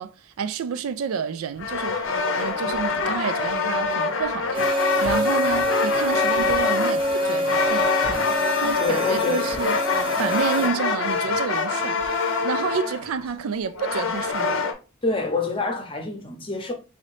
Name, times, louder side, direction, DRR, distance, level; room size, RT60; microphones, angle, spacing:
voice 1, 0.0-2.0 2.4-8.3 8.6-9.8 10.2-12.0 12.4-14.6, right 6 dB, 85° right, 0.4 m, -29 dB
sound 1, 1.6-14.7, left 4 dB, 65° left, 0.6 m, -25 dB
sound 2, 4.5-10.7, equal, 25° right, 0.8 m, -26 dB
voice 2, 8.8-9.4 15.0-16.7, left 3 dB, 25° left, 0.7 m, -26 dB
4.0 x 2.7 x 3.1 m
head